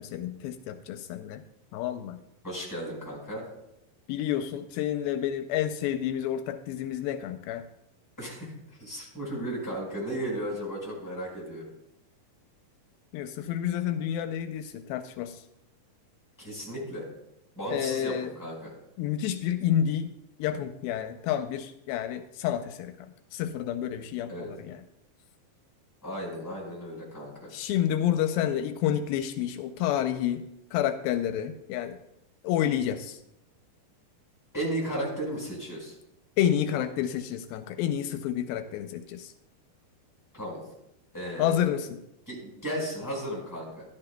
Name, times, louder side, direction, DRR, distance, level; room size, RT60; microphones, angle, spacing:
voice 1, 0.0-1.4 1.7-2.2 4.1-7.6 13.1-15.4 17.7-18.3 19.0-20.1 20.4-22.9 23.3-24.8 27.5-30.4 30.7-32.0 32.4-33.2 36.4-39.3 41.4-42.0, left 10 dB, 85° left, 9 dB, 2.4 m, -29 dB
voice 2, 2.4-3.5 8.2-11.7 16.4-17.1 17.6-18.7 24.3-24.5 26.0-27.5 34.5-35.9 40.3-40.6 41.1-41.7 42.3-43.8, right 1 dB, 5° left, -2 dB, 4.0 m, -35 dB
13.5 x 11.5 x 2.2 m, 0.84 s
omnidirectional pair, 4.2 m